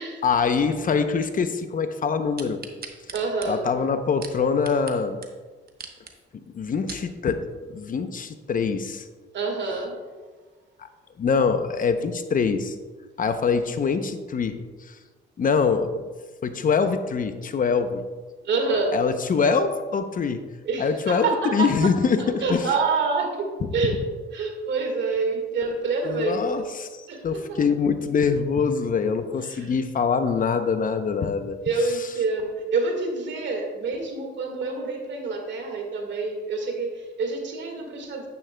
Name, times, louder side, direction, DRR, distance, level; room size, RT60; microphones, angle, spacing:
voice 1, 0.2-2.6 3.4-5.2 6.5-9.1 11.2-12.8 13.2-15.0 15.4-16.0 16.4-18.0 18.9-20.4 20.8-22.7 26.0-31.6, left 5 dB, 45° left, 9 dB, 0.7 m, -24 dB
sound 1, 2.4-5.0 5.2-5.3 5.7-6.1 6.6-7.1 7.7-7.8, right 6 dB, 50° right, 1.1 m, -40 dB
voice 2, 3.1-3.7 9.3-10.0 18.4-19.0 20.7-21.7 22.2-23.5 23.7-24.0 24.3-26.7 27.1-27.6 29.5-29.7 31.7-38.3, right 4 dB, 65° right, 2 dB, 1.8 m, -27 dB
9.7 x 9.2 x 2.2 m, 1.4 s
cardioid pair, 90°, 20 cm